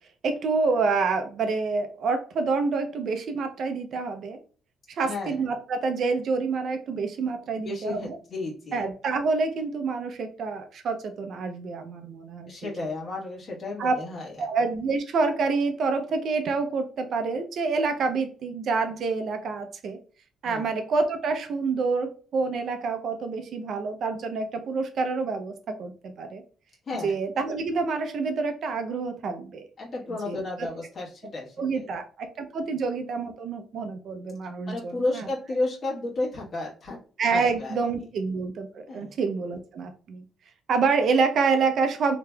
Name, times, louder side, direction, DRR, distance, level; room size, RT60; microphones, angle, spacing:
voice 1, 0.2-4.4 4.9-8.2 8.7-12.7 13.8-13.9 14.4-20.0 20.4-26.4 27.0-29.7 30.1-30.4 31.6-35.2 37.2-40.2 40.7-42.2, right 4 dB, 60° right, 7 dB, 0.4 m, -27 dB
voice 2, 5.0-5.5 7.5-8.9 12.5-14.5 20.4-20.8 26.9-27.1 29.8-31.9 34.7-37.0 37.3-37.8 38.9-39.2, left 2 dB, 45° left, -4 dB, 1.2 m, -32 dB
3.2 x 2.8 x 2.2 m, 0.40 s
cardioid pair, 110°, 0 cm